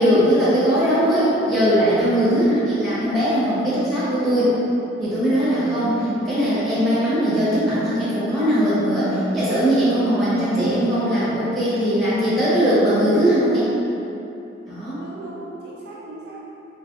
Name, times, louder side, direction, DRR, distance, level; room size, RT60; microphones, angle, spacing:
voice 1, 0.0-4.6 5.0-5.9 6.3-13.7 14.7-15.0, equal, ahead, -13 dB, 1.1 m, -20 dB
voice 2, 5.9-6.2 10.4-11.1 13.1-13.4 15.0-16.5, right 1 dB, 55° right, -6 dB, 0.5 m, -34 dB
3.2 x 2.6 x 3.6 m, 2.9 s
head